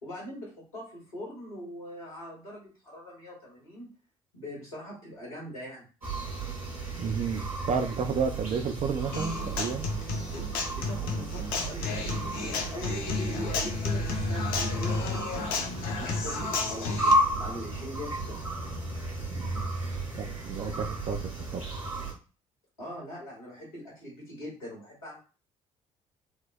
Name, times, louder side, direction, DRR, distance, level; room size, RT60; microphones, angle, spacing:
voice 1, 0.0-3.9 4.3-5.8 10.3-10.4 10.7-15.7 16.0-16.4 16.7-18.4 22.8-25.2, left 1 dB, 85° left, -4 dB, 1.6 m, -42 dB
sound 1, 6.0-22.1, right 2 dB, 90° right, 1.1 m, -33 dB
voice 2, 7.0-9.9 19.3-19.5 20.2-21.6, right 5 dB, 40° right, 7 dB, 0.5 m, -31 dB
Human voice / Acoustic guitar, 9.1-17.1, left 4 dB, 55° left, 0.7 m, -32 dB
4.6 x 2.0 x 2.3 m, 0.35 s
figure-of-eight pair, 50°, 18 cm